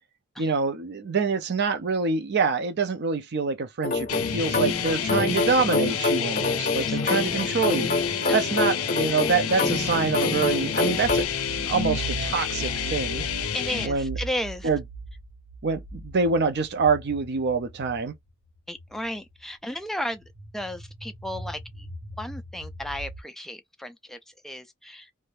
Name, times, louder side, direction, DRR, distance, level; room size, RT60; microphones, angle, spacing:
voice 1, 0.4-7.9 8.3-11.3 11.7-13.3 13.8-14.2 14.6-14.8 15.6-18.1, right 4 dB, 50° right, 0.5 m, -26 dB
sound 1, 3.8-11.2, left 3 dB, 40° left, 0.7 m, -27 dB
sound 2, 4.1-13.9, left 8 dB, 70° left, 0.5 m, -29 dB
voice 2, 6.8-7.5 8.3-9.0 13.5-14.7 18.7-20.2 20.5-21.6 22.2-24.2 24.4-25.1, equal, ahead, 0.3 m, -34 dB
sound 3, 11.0-18.1 18.8-19.0 20.2-23.2, right 3 dB, 80° right, 1.0 m, -39 dB
2.6 x 2.1 x 3.1 m
head